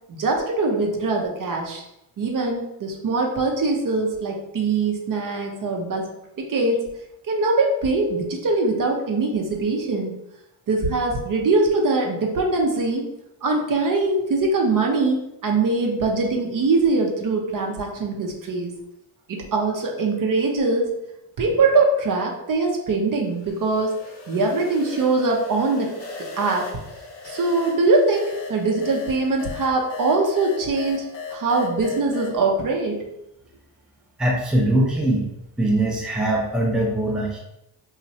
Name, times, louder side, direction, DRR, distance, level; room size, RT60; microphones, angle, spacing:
voice 1, 0.1-1.8 2.2-6.1 6.4-6.8 7.3-10.1 10.7-13.1 13.4-18.7 19.3-20.9 21.4-23.9 24.3-25.9 26.2-26.7 27.2-31.1 31.3-33.0, right 3 dB, 45° right, 1 dB, 0.7 m, -22 dB
sound 1, 23.3-32.4, left 4 dB, 60° left, 0.9 m, -37 dB
voice 2, 34.2-35.3 35.6-37.4, right 1 dB, ahead, -2 dB, 0.5 m, -21 dB
3.0 x 2.4 x 2.7 m, 0.85 s
cardioid pair, 75°, 47 cm